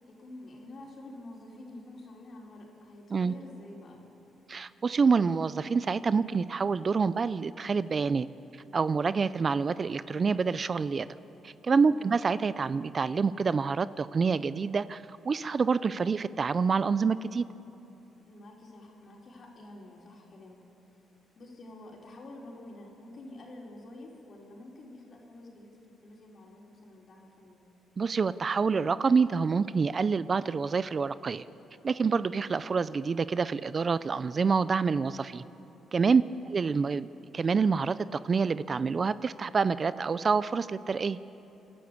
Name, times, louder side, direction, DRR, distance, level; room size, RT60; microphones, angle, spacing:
voice 1, 0.0-4.0 11.8-12.1 18.2-20.6 21.3-27.6, left 1 dB, 50° left, -1 dB, 4.6 m, -48 dB
voice 2, 4.5-8.3 8.7-11.1 11.4-17.4 28.0-31.4 31.8-35.4 35.9-36.2 36.5-37.1 37.3-41.2, right 5 dB, 40° right, 16 dB, 0.5 m, -27 dB
28.5 x 11.5 x 8.4 m, 3.0 s
cardioid pair, 90°, 0 cm